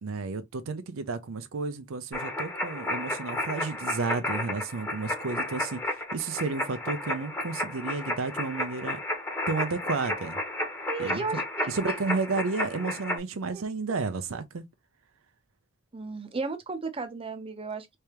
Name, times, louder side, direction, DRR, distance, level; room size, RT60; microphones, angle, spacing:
voice 1, 0.0-9.0 9.5-10.4 11.0-11.4 11.7-14.6, right 4 dB, 75° right, 0.5 m, -32 dB
sound 1, 2.1-13.2, left 1 dB, 10° left, 1.0 m, -32 dB
voice 2, 10.9-11.9 13.5-13.6 15.9-18.0, right 4 dB, 30° right, 0.7 m, -35 dB
3.3 x 3.3 x 2.9 m
head